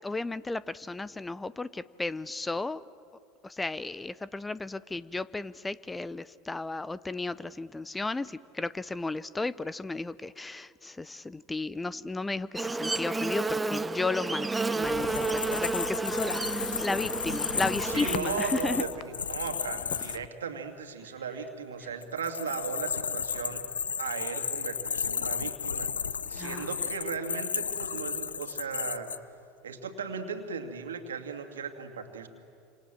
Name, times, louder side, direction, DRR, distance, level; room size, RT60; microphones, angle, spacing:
voice 1, 0.0-2.8 3.4-18.8 26.3-26.7, left 3 dB, 15° left, 19 dB, 0.7 m, -34 dB
Buzz, 12.6-18.2, right 3 dB, 15° right, 0.9 m, -31 dB
sound 1, 14.8-20.3, left 13 dB, 50° left, 0.8 m, -43 dB
sound 2, 14.9-20.2 22.0-29.2, left 6 dB, 90° left, 0.6 m, -34 dB
voice 2, 17.8-23.6 24.0-25.9 26.3-29.1 29.6-32.3, right 5 dB, 85° right, 5 dB, 2.5 m, -36 dB
28.0 x 27.0 x 7.7 m, 2.5 s
hypercardioid pair, 80°, 0 cm